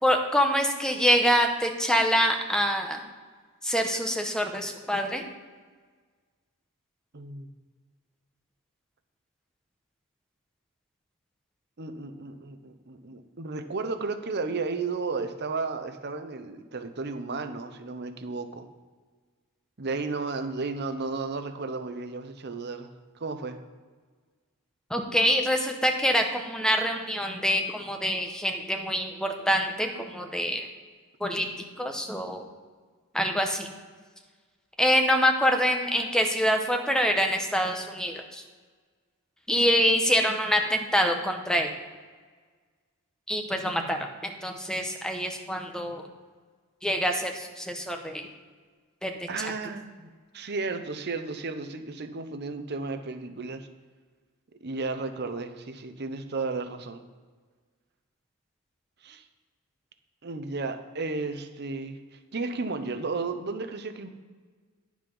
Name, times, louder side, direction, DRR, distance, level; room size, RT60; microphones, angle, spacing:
voice 1, 0.0-3.0 3.6-5.3 24.9-30.7 31.2-31.5 31.8-32.4 33.1-33.7 34.8-38.4 39.5-41.7 43.3-46.0 46.8-48.3 49.0-49.5, equal, 5° left, 4 dB, 0.9 m, -25 dB
voice 2, 7.1-7.5 11.8-18.7 19.8-23.6 49.3-50.1 50.3-53.7 54.6-57.0 59.0-59.3 60.2-64.1, right 3 dB, 50° right, 8 dB, 0.8 m, -33 dB
10.0 x 6.2 x 5.4 m, 1.5 s
head